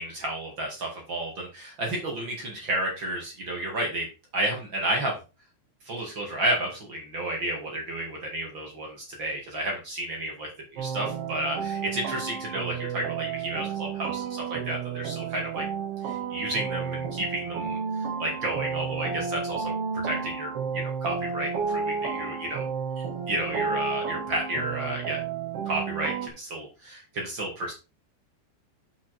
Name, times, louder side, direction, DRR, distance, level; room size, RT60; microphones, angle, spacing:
voice 1, 0.0-4.1 4.3-5.2 5.8-15.6 16.0-22.7 23.0-25.2 25.7-27.7, right 1 dB, 35° right, 0 dB, 2.3 m, -32 dB
sound 1, 10.8-26.3, right 6 dB, 90° right, 1.3 m, -32 dB
7.4 x 5.7 x 4.5 m, 0.30 s
omnidirectional pair, 4.8 m